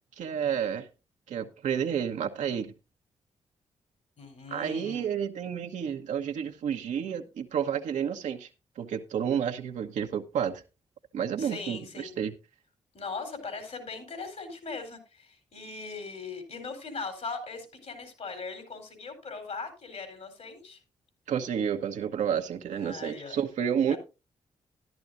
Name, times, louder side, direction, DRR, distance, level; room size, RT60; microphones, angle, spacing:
voice 1, 0.2-0.9 1.3-2.7 4.5-8.5 8.8-10.6 11.1-12.3 21.3-24.0, right 8 dB, 80° right, 1.1 m, -30 dB
voice 2, 4.2-5.1 11.4-12.1 12.9-20.8 22.7-23.4 23.9-24.0, left 4 dB, 65° left, 4.2 m, -39 dB
13.5 x 11.5 x 2.6 m
supercardioid pair, 45°, 12 cm